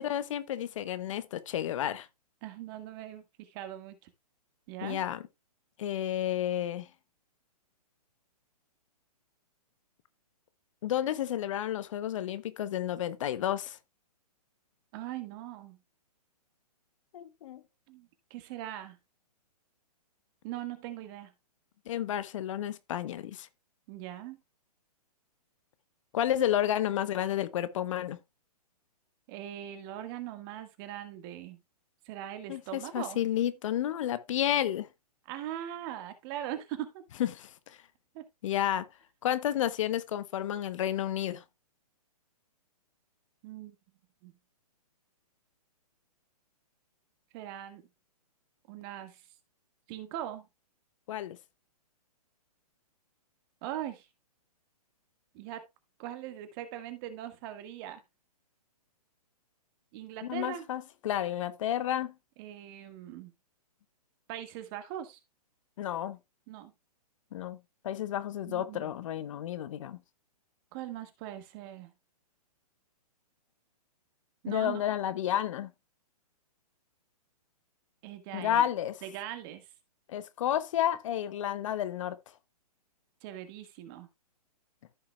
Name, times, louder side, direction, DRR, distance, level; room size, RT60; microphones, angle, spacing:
voice 1, 0.0-2.1 4.8-5.2 5.8-6.9 10.8-13.8 17.1-17.6 21.9-23.5 26.1-28.2 32.5-34.9 37.2-37.8 38.4-38.9 39.2-41.4 51.1-51.4 60.2-62.1 65.8-66.2 67.3-67.6 67.8-70.0 74.5-75.7 78.3-79.0 80.1-82.2, left 11 dB, 50° left, 0.9 m, -31 dB
voice 2, 2.4-4.1 4.7-5.0 14.9-15.8 17.9-19.0 20.4-21.3 23.9-24.4 29.3-31.6 32.1-33.2 35.3-37.0 38.1-38.2 43.4-43.8 44.2-44.3 47.3-47.8 48.7-49.2 49.9-50.5 53.6-54.1 55.3-55.6 56.0-58.0 59.9-60.7 62.4-63.3 64.3-65.2 66.5-66.7 68.4-68.9 70.7-71.9 74.4-74.8 78.0-78.7 79.0-79.7 83.2-84.1, right 12 dB, 35° right, 1.7 m, -41 dB
14.5 x 5.8 x 2.3 m
hypercardioid pair, 130°, 20 cm